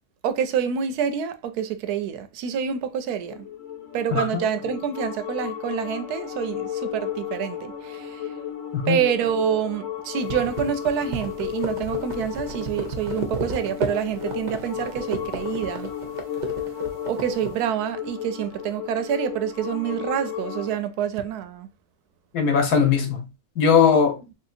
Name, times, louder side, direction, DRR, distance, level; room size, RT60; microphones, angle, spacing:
voice 1, 0.2-3.4 3.9-8.3 8.9-15.9 17.1-21.7, right 8 dB, 85° right, 1.1 m, -27 dB
sound 1, 3.2-20.8, left 10 dB, 65° left, 1.1 m, -34 dB
voice 2, 4.1-4.4 8.7-9.0 22.3-23.3 23.6-24.2, left 6 dB, 90° left, 1.4 m, -19 dB
sound 2, 10.2-17.6, right 3 dB, 40° right, 0.7 m, -33 dB
3.6 x 2.8 x 2.5 m
omnidirectional pair, 1.6 m